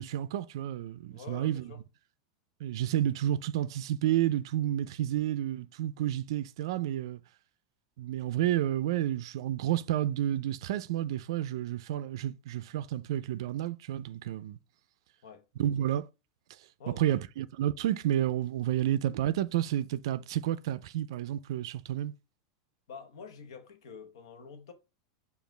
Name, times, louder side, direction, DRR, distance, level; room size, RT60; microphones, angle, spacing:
voice 1, 0.0-1.7 2.6-7.2 8.0-14.6 15.6-16.1 17.0-22.1, right 12 dB, 70° right, 0.3 m, -30 dB
voice 2, 1.1-1.8 15.2-15.4 16.8-17.2 22.9-24.7, left 5 dB, 80° left, 0.9 m, -47 dB
7.1 x 2.4 x 3.2 m
supercardioid pair, 165°, 3 cm